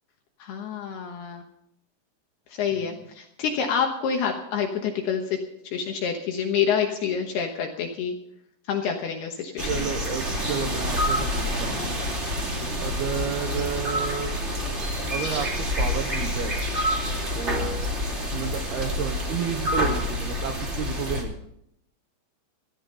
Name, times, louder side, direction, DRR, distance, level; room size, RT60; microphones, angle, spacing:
voice 1, 0.4-1.4 2.5-5.4 5.6-8.2 8.7-9.8, left 7 dB, 70° left, 3 dB, 2.6 m, -27 dB
voice 2, 2.7-3.1 9.6-11.8 12.8-14.3 15.1-16.5 17.3-17.8 18.3-21.3, right 8 dB, 80° right, 5 dB, 2.3 m, -32 dB
sound 1, 9.6-21.2, left 1 dB, 25° right, 1.4 m, -27 dB
16.5 x 11.5 x 5.5 m, 0.76 s
omnidirectional pair, 6.0 m